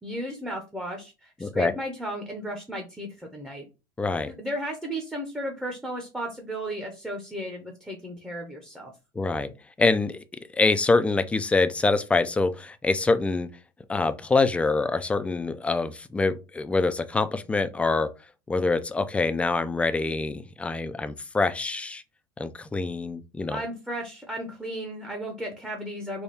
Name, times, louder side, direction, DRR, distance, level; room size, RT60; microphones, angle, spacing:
voice 1, 0.0-3.6 4.3-8.9 23.5-26.2, right 1 dB, 5° right, 0.8 m, -34 dB
voice 2, 1.4-1.7 4.0-4.3 9.2-9.5 9.8-10.2 10.5-13.5 13.9-18.1 18.5-22.0 22.4-23.6, left 3 dB, 10° left, 0.4 m, -25 dB
3.5 x 2.3 x 4.1 m
supercardioid pair, 115°, 12 cm